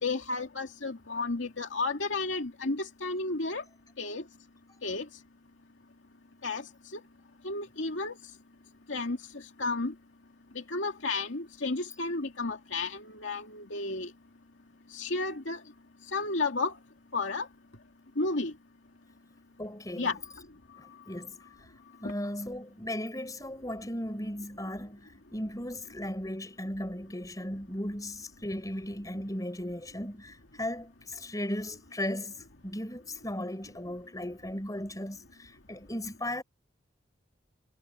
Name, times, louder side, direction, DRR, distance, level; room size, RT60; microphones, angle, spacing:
voice 1, 0.0-3.6 4.0-4.2 4.8-5.1 6.4-6.7 6.9-7.0 7.4-8.2 8.9-9.9 10.5-14.1 14.9-15.6 16.1-16.7 17.1-17.5 18.2-18.5 20.0-20.2, left 3 dB, 75° left, 2.4 m, -32 dB
voice 2, 19.6-20.1 20.8-21.4 22.0-32.4 32.6-36.4, left 1 dB, 20° left, 4.0 m, -36 dB
head